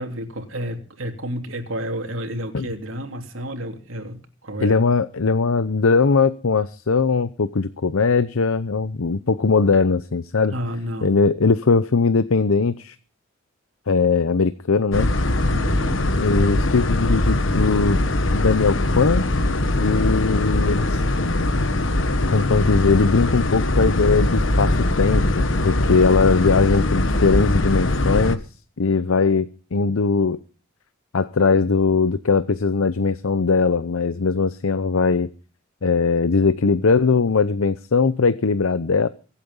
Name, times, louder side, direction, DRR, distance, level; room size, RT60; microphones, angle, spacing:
voice 1, 0.0-4.8 10.5-11.2 15.5-16.0, equal, 70° right, 4 dB, 3.2 m, -31 dB
voice 2, 4.6-10.5 11.0-12.9 13.9-15.1 16.2-18.0 18.3-19.3 19.8-21.0 22.3-28.4 28.8-30.4 31.1-35.3 35.8-39.1, left 4 dB, 85° left, 14 dB, 0.7 m, -20 dB
sound 1, 14.9-28.4, left 1 dB, 65° left, 1.4 m, -21 dB
23.5 x 8.6 x 5.4 m, 0.39 s
head